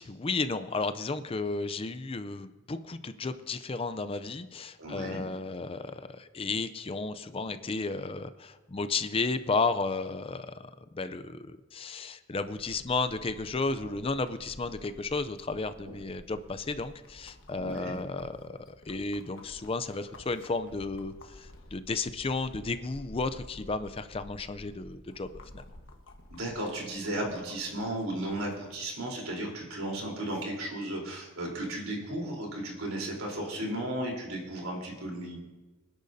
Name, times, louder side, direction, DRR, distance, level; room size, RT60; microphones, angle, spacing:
voice 1, 0.0-25.6, left 3 dB, 25° left, 12 dB, 0.5 m, -33 dB
voice 2, 4.8-5.2 15.8-16.0 17.6-18.0 26.3-35.4, right 1 dB, 90° right, -1 dB, 3.8 m, -35 dB
sound 1, 12.4-28.8, left 1 dB, 65° left, 1.3 m, -52 dB
25.5 x 10.5 x 2.7 m, 1.2 s
head